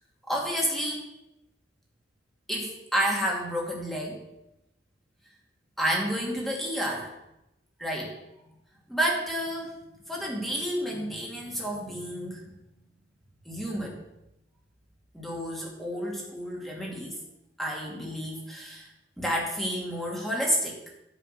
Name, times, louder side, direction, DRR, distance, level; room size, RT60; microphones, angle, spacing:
voice 1, 0.3-1.0 2.5-4.2 5.8-7.1 7.8-8.1 8.9-9.7 10.1-12.4 13.5-14.0 15.1-17.2 17.6-18.9 19.2-20.8, equal, ahead, -2 dB, 2.5 m, -30 dB
10.0 x 5.6 x 8.1 m, 0.89 s
head